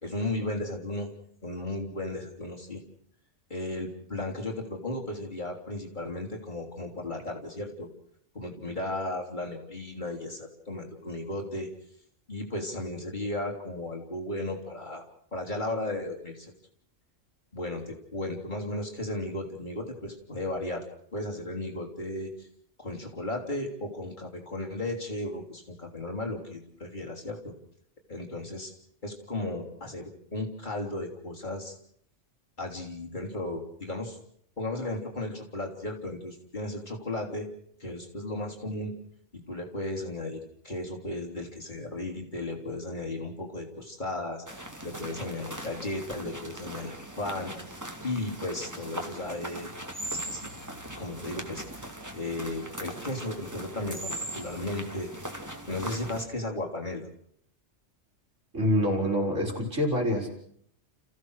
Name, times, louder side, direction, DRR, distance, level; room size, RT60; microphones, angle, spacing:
voice 1, 0.0-1.1 1.4-2.8 3.5-7.9 8.4-11.7 12.3-15.0 15.3-16.5 17.5-20.9 21.1-22.5 22.8-27.5 28.1-28.7 29.0-31.8 32.6-34.2 34.6-37.5 37.8-38.9 39.3-47.5 48.0-49.7 50.1-50.7 51.0-55.4 55.7-57.1, left 1 dB, 40° left, 0 dB, 3.5 m, -35 dB
sound 1, 44.5-56.3, right 1 dB, 15° right, 2.3 m, -40 dB
voice 2, 58.5-60.3, equal, 90° right, 0 dB, 4.9 m, -26 dB
30.0 x 15.5 x 6.5 m, 0.68 s
omnidirectional pair, 1.2 m